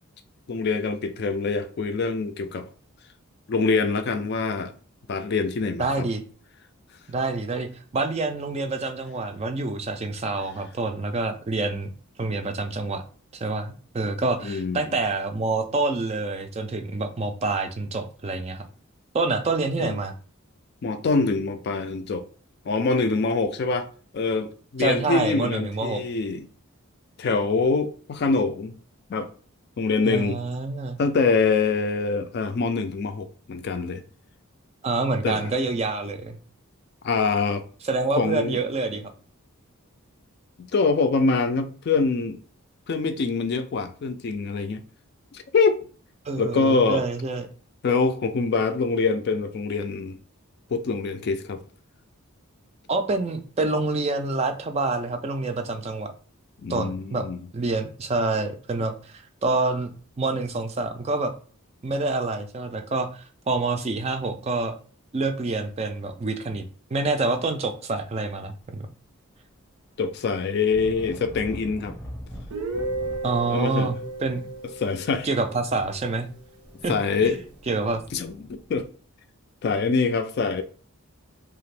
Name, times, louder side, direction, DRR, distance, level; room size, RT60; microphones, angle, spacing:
voice 1, 0.5-2.7 3.5-4.7 5.1-6.1 14.4-14.8 19.8-20.0 20.8-22.3 22.7-23.9 24.1-26.5 27.2-28.8 29.1-29.3 29.8-30.4 31.0-34.0 35.2-35.5 37.0-37.6 38.2-38.6 40.6-42.4 42.9-44.8 45.3-45.8 46.4-47.1 47.8-50.2 50.7-51.6 56.6-57.4 70.0-72.0 73.5-73.9 74.8-75.3 76.9-77.4 78.1-78.9 79.6-80.6, left 4 dB, 50° left, 0.3 m, -24 dB
voice 2, 5.8-6.2 7.1-11.9 12.2-13.0 13.3-18.6 19.1-20.1 24.8-26.0 30.0-31.0 34.8-36.4 37.8-39.1 46.3-47.5 52.9-56.1 56.7-57.2 57.5-61.3 61.8-64.8 65.1-66.6 66.9-68.9 73.2-74.4 75.2-76.3 76.8-76.9 77.2-77.3 77.7-78.0, right 3 dB, 30° right, 0.3 m, -27 dB
sound 1, 68.8-69.0 69.3-78.8, equal, 10° left, 0.7 m, -44 dB
Guitar, 72.5-76.3, right 2 dB, 85° right, 0.8 m, -34 dB
2.8 x 2.4 x 3.2 m
head